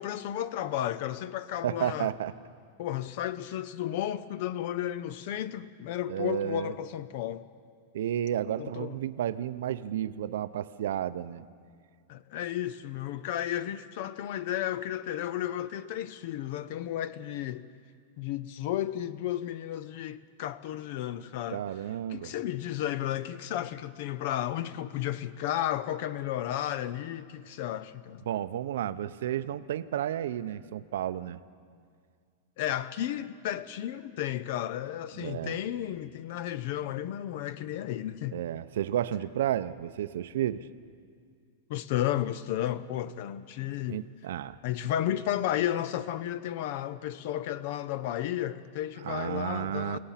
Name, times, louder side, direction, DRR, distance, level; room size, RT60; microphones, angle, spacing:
voice 1, 0.0-2.1 2.8-7.5 8.6-9.0 12.1-17.7 18.2-21.6 22.1-28.2 32.6-38.4 41.7-44.0 44.6-50.0, left 12 dB, 45° left, 0.6 m, -33 dB
voice 2, 1.6-2.3 6.1-6.7 7.9-11.4 21.5-22.3 28.3-31.4 35.2-35.6 38.3-40.7 43.9-44.6 49.0-50.0, right 11 dB, 70° right, 0.7 m, -32 dB
29.5 x 17.5 x 5.8 m
supercardioid pair, 170°, 0 cm